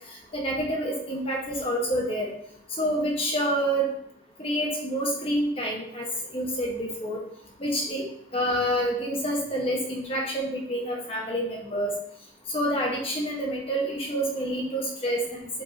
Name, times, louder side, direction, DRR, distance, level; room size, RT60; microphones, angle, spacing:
voice 1, 0.3-2.3 2.8-3.9 4.4-6.0 6.3-7.2 7.6-8.0 8.3-11.9 12.5-15.5, equal, 30° left, -1 dB, 1.4 m, -27 dB
8.1 x 4.4 x 2.9 m, 0.72 s
head